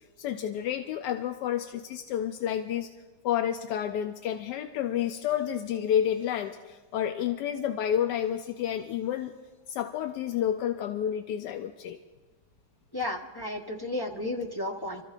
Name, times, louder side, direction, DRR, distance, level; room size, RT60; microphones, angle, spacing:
voice 1, 0.2-2.9 3.2-9.3 9.7-12.0, left 10 dB, 80° left, 7 dB, 1.2 m, -30 dB
voice 2, 12.9-15.0, left 1 dB, 25° left, 0 dB, 0.5 m, -33 dB
30.0 x 14.0 x 2.4 m, 1.3 s
omnidirectional pair, 1.8 m